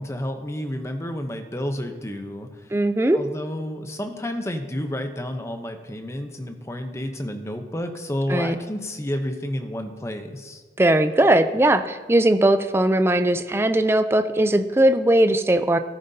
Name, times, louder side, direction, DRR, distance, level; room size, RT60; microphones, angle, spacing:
voice 1, 0.0-2.7 3.1-10.6, left 1 dB, 15° left, 6 dB, 0.7 m, -30 dB
voice 2, 2.7-3.2 8.3-8.5 10.8-15.8, right 1 dB, 15° right, 9 dB, 0.4 m, -19 dB
13.5 x 10.0 x 2.7 m, 1.4 s
head